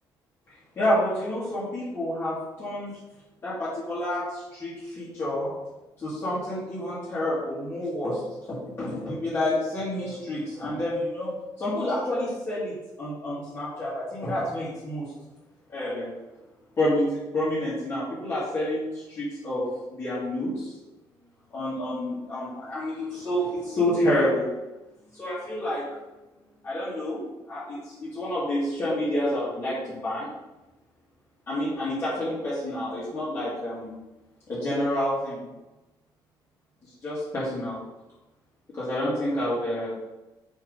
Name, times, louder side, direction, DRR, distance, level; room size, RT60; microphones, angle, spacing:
voice 1, 0.8-2.9 3.4-5.5 6.0-8.2 8.5-15.1 15.7-16.1 16.8-19.6 19.9-20.7 21.5-24.5 25.1-25.8 26.6-27.2 27.5-30.3 31.5-34.0 34.5-35.5 36.8-37.8 38.7-40.0, left 1 dB, 30° left, -11 dB, 2.4 m, -29 dB
7.3 x 3.7 x 5.4 m, 1.0 s
cardioid pair, 165°, 9 cm